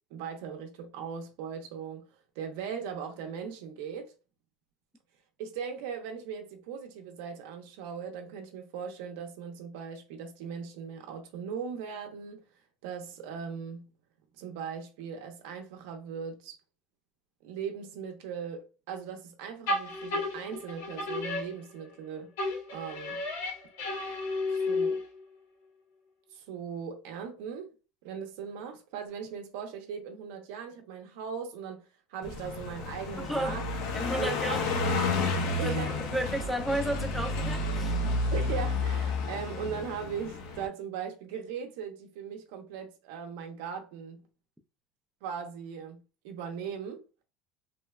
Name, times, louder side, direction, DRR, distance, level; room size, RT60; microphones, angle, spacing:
voice 1, 0.1-2.1 2.4-4.1 5.4-12.4 12.8-13.9 14.3-16.6 17.4-22.3 22.7-23.2 24.5-25.0 26.3-27.7 28.0-33.6 34.2-34.6 35.6-36.0 38.3-44.2 45.2-47.0, right 7 dB, 80° right, 0.6 m, -39 dB
sound 1, 19.7-22.0 22.4-25.2, left 2 dB, 85° left, 0.9 m, -32 dB
Car passing by, 32.2-40.7, left 3 dB, 60° left, 0.5 m, -31 dB
voice 2, 33.2-33.6 33.9-34.8 35.5-35.8 36.1-38.0, right 1 dB, ahead, 0.3 m, -32 dB
3.1 x 2.1 x 2.3 m
cardioid pair, 155°, 0 cm